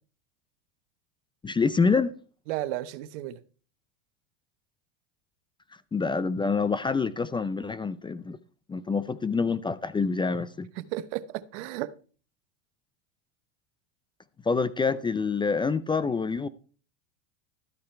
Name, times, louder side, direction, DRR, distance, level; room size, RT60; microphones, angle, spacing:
voice 1, 1.4-2.1 5.9-8.4 8.7-10.7 14.5-16.5, left 4 dB, 15° left, 0.5 m, -26 dB
voice 2, 2.5-3.4 10.8-11.9, right 14 dB, 65° right, 1.0 m, -33 dB
13.0 x 8.6 x 4.5 m
hypercardioid pair, 100°, 38 cm